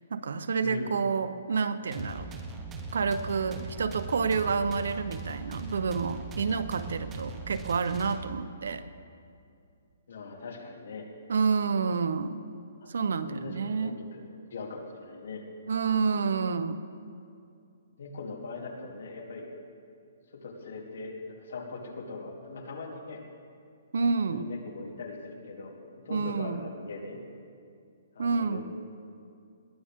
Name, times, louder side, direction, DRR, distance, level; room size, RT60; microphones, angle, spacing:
voice 1, 0.1-2.3 2.9-8.8 11.3-12.4 12.9-14.0 15.7-16.8 23.9-24.4 26.1-26.6 28.2-28.6, right 5 dB, 75° right, 11 dB, 0.9 m, -29 dB
voice 2, 0.6-0.9 10.1-11.1 12.8-12.9 13.3-14.2 14.5-15.5 18.0-19.5 20.3-23.2 24.3-25.8 26.0-27.2 28.1-28.6, left 3 dB, 70° left, -1 dB, 3.2 m, -40 dB
sound 1, 1.9-8.6, right 3 dB, 15° right, 1.1 m, -40 dB
21.0 x 17.0 x 3.8 m, 2.4 s
hypercardioid pair, 165°, 0 cm